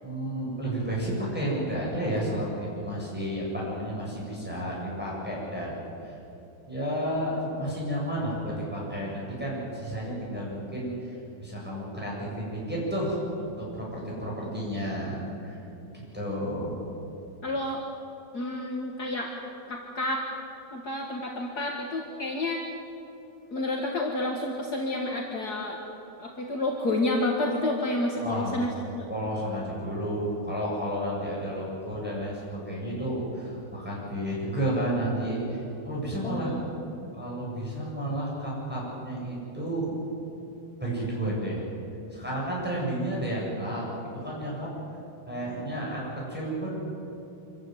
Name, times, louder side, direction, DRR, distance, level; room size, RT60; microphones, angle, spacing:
voice 1, 0.0-5.8 6.0-6.2 6.7-15.6 15.9-16.8 28.2-28.6 29.1-36.5 37.1-40.0 40.8-41.6 42.1-44.7 45.3-46.9, right 1 dB, 5° right, -6 dB, 7.9 m, -32 dB
voice 2, 17.4-17.8 18.3-19.3 19.7-20.3 20.7-22.6 23.5-25.8 26.2-29.1 36.2-36.9, left 2 dB, 50° left, 0 dB, 2.4 m, -30 dB
26.0 x 15.0 x 9.5 m, 2.9 s
omnidirectional pair, 2.2 m